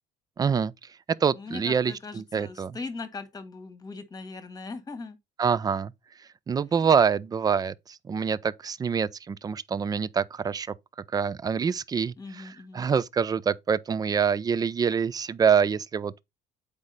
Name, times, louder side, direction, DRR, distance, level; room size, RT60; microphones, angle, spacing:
voice 1, 0.4-0.7 1.2-2.8 5.4-5.9 6.5-10.7 11.1-16.2, right 6 dB, 20° right, 0.4 m, -26 dB
voice 2, 1.3-5.2 6.5-6.9 12.2-12.8, left 3 dB, 20° left, 1.4 m, -40 dB
8.1 x 4.9 x 4.0 m
cardioid pair, 130°, 18 cm